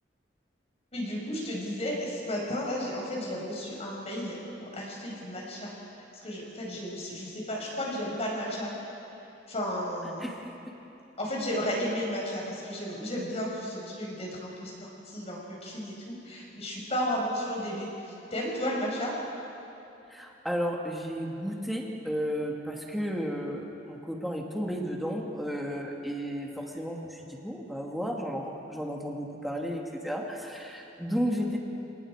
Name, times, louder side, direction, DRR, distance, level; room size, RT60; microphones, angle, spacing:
voice 1, 0.9-5.7 6.2-8.7 9.5-10.3 11.2-19.1, equal, 35° left, -2 dB, 5.6 m, -33 dB
voice 2, 20.1-31.6, equal, ahead, -1 dB, 2.3 m, -33 dB
29.0 x 19.0 x 5.0 m, 2.9 s
head